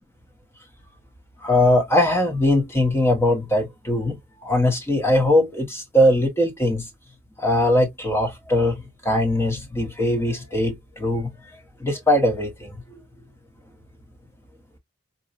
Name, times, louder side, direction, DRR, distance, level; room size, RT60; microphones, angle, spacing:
voice 1, 1.4-6.9 7.4-8.7 9.0-11.3 11.8-12.8, left 1 dB, 10° left, 0.8 m, -20 dB
4.0 x 2.2 x 2.3 m
head